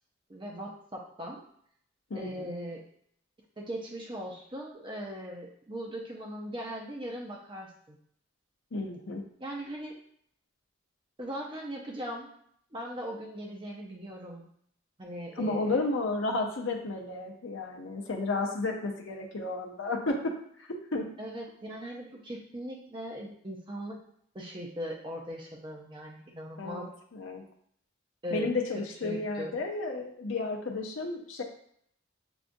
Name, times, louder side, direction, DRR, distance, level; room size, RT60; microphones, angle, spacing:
voice 1, 0.3-1.4 2.1-2.8 3.6-8.0 9.4-9.9 11.2-12.3 12.7-14.5 15.0-15.8 21.2-24.0 24.3-26.9 28.2-28.5 29.0-29.6, equal, 25° right, -1 dB, 0.6 m, -39 dB
voice 2, 2.1-2.5 8.7-9.2 15.4-20.3 20.6-21.1 26.6-27.4 28.3-31.4, left 2 dB, 60° left, 1 dB, 0.6 m, -32 dB
6.8 x 2.4 x 2.6 m, 0.68 s
head